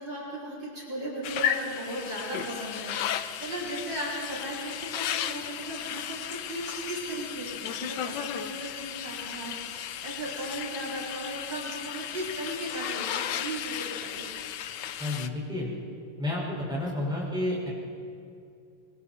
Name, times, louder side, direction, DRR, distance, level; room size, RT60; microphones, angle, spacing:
voice 1, 0.0-14.3, right 1 dB, 50° right, -6 dB, 5.2 m, -36 dB
sound 1, 1.2-15.3, left 10 dB, 65° left, 1.2 m, -35 dB
voice 2, 15.0-15.7 16.2-17.7, left 1 dB, ahead, -6 dB, 5.8 m, -30 dB
25.5 x 23.0 x 4.5 m, 2.4 s
omnidirectional pair, 2.4 m